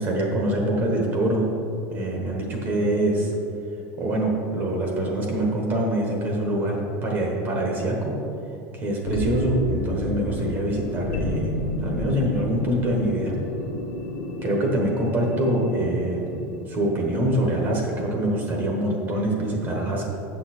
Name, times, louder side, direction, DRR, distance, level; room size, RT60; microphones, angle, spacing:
voice 1, 0.0-1.5 1.9-3.3 4.0-8.1 8.7-11.5 11.8-13.3 14.4-16.2 16.7-20.0, right 1 dB, 30° right, 0 dB, 1.2 m, -24 dB
sound 1, 9.1-16.9, left 2 dB, 80° left, 1.0 m, -31 dB
8.8 x 6.7 x 4.3 m, 2.8 s
supercardioid pair, 165°, 7 cm